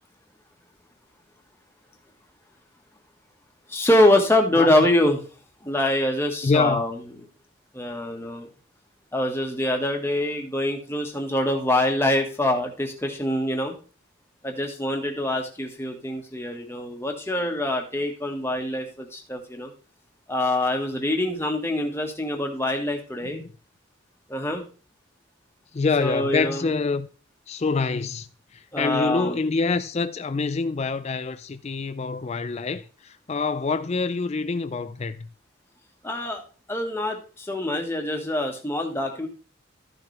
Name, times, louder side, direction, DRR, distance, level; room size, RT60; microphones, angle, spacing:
voice 1, 3.7-5.2 5.6-7.0 7.7-8.5 9.1-13.7 14.4-19.7 20.3-23.4 24.3-24.6 26.0-26.7 28.7-29.4 36.0-36.4 36.7-39.3, left 1 dB, 10° left, 1.6 m, -24 dB
voice 2, 6.4-6.9 23.3-23.5 25.7-27.1 27.5-28.3 28.8-35.3, left 4 dB, 30° left, 0.4 m, -26 dB
13.5 x 6.7 x 3.4 m
head